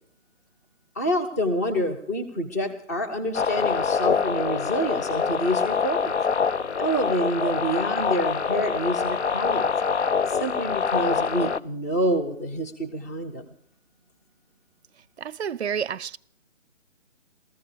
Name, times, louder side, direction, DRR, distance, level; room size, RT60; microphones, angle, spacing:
voice 1, 1.0-6.1 6.8-9.7 10.3-13.5, equal, 15° left, 0.7 m, -27 dB
sound 1, 3.3-11.6, left 6 dB, 60° left, 0.6 m, -25 dB
voice 2, 15.2-16.2, right 7 dB, 60° right, 0.5 m, -30 dB
16.5 x 15.0 x 4.9 m
figure-of-eight pair, 140°, 38 cm